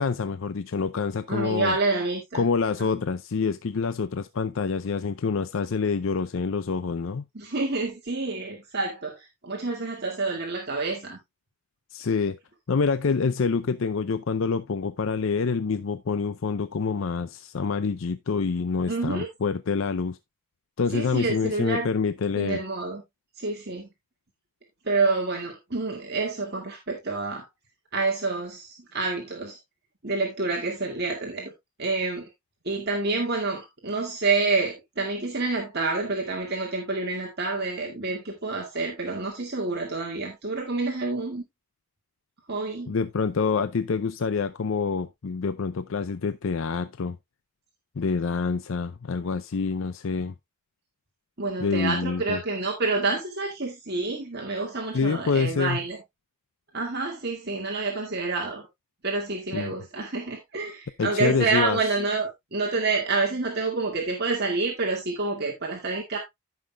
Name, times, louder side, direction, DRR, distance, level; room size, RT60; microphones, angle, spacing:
voice 1, 0.0-1.8 2.3-7.2 11.9-12.4 12.7-20.2 20.8-22.6 42.9-47.2 48.0-50.3 51.6-52.4 54.9-55.8 59.5-59.7 61.0-61.8, left 5 dB, 60° left, 0.5 m, -26 dB
voice 2, 1.3-2.4 7.3-11.2 18.9-19.3 20.9-21.9 22.4-23.0 23.4-23.9 24.8-27.4 27.9-29.6 30.0-31.5 31.8-32.3 32.7-41.4 42.5-42.9 51.4-56.0 56.7-58.7 59.0-66.2, right 3 dB, 45° right, 1.9 m, -28 dB
15.5 x 5.8 x 2.3 m
head